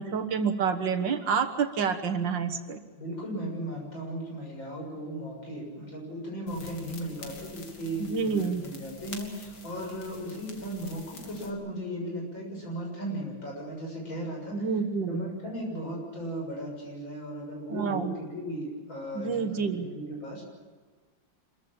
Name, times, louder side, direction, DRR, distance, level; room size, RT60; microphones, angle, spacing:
voice 1, 0.0-2.8 8.0-8.6 14.5-15.2 17.7-18.1 19.1-19.9, right 6 dB, 70° right, 7 dB, 2.0 m, -28 dB
voice 2, 3.0-14.7 15.1-20.5, equal, 80° left, -1 dB, 7.8 m, -36 dB
sound 1, 6.5-11.5, left 2 dB, 60° left, 2.6 m, -46 dB
26.5 x 15.0 x 8.8 m, 1.4 s
omnidirectional pair, 2.1 m